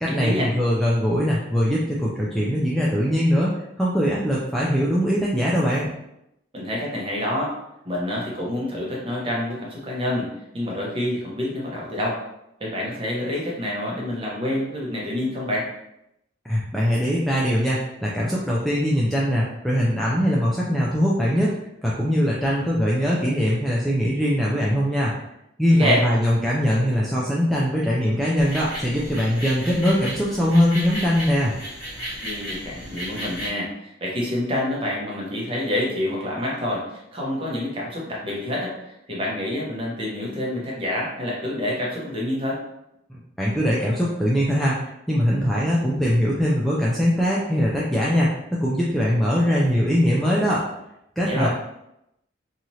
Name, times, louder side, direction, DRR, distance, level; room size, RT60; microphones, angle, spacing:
voice 1, 0.0-5.9 16.4-21.5 21.8-25.1 25.6-31.5 43.1-44.8 45.1-50.6 51.2-51.5, equal, ahead, -6 dB, 0.3 m, -21 dB
voice 2, 6.5-7.5 7.8-12.2 12.6-15.7 25.8-26.0 32.2-42.6 51.2-51.5, left 1 dB, 30° right, -4 dB, 0.8 m, -27 dB
sound 1, 28.4-33.5, equal, 20° left, 1.5 m, -34 dB
3.0 x 2.4 x 2.7 m, 0.83 s
head